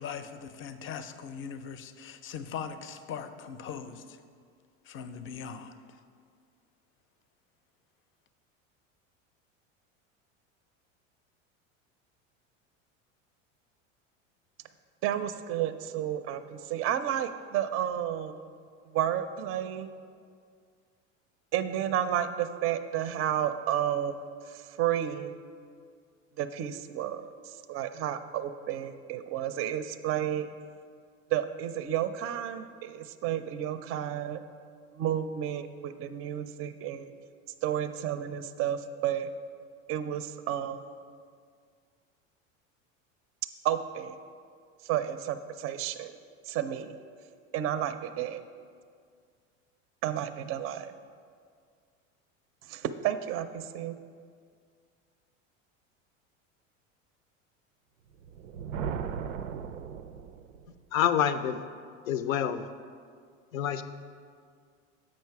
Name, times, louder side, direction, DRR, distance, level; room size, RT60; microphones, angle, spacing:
voice 1, 0.0-4.2 4.8-6.0, left 7 dB, 30° left, 10 dB, 0.5 m, -40 dB
voice 2, 15.0-18.3 18.9-19.9 21.5-25.3 26.4-30.5 31.3-34.4 34.9-37.1 37.6-39.3 39.9-40.9 43.6-44.2 44.8-46.1 46.5-46.9 47.5-48.4 50.0-50.9 52.7-54.0, right 10 dB, 35° right, 11 dB, 0.5 m, -31 dB
Thunder, 58.1-60.8, right 7 dB, 85° right, 0.5 m, -37 dB
voice 3, 60.9-61.6 62.1-62.6 63.5-63.8, left 9 dB, 85° left, 11 dB, 0.5 m, -27 dB
7.5 x 5.3 x 4.6 m, 2.1 s
hypercardioid pair, 85°, 39 cm